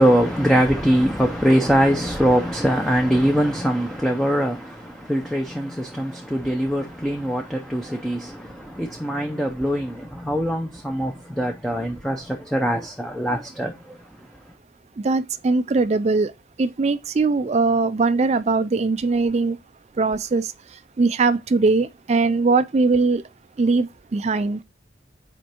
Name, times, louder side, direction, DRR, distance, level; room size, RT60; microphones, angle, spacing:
voice 1, 0.0-14.0, equal, ahead, 0.6 m, -22 dB
voice 2, 15.0-16.3 16.6-19.6 20.0-20.5 21.0-23.2 23.6-23.9 24.1-24.6, right 3 dB, 35° right, 0.4 m, -20 dB
5.3 x 4.5 x 4.3 m
head